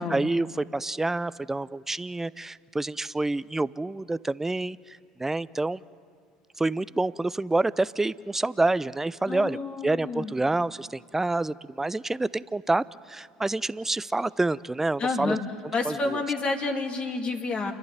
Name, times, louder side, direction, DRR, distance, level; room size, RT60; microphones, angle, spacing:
voice 1, 0.0-5.8 6.6-15.4 15.8-16.2, right 2 dB, 10° right, 19 dB, 0.5 m, -28 dB
voice 2, 9.3-10.3 15.0-15.4 15.7-17.7, left 3 dB, 35° left, 3 dB, 2.5 m, -29 dB
29.0 x 11.5 x 9.3 m, 2.1 s
hypercardioid pair, 70°, 3 cm